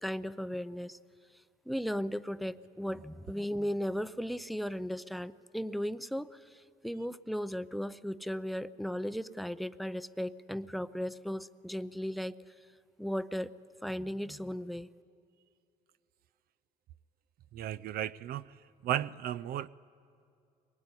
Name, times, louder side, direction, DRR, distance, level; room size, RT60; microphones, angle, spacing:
voice 1, 0.0-1.0 1.7-12.4 13.0-13.5 13.8-14.9, equal, ahead, 14 dB, 0.6 m, -36 dB
voice 2, 17.5-18.5 18.8-19.7, right 11 dB, 65° right, 15 dB, 0.5 m, -34 dB
23.0 x 20.5 x 9.7 m, 2.5 s
cardioid pair, 110°, 17 cm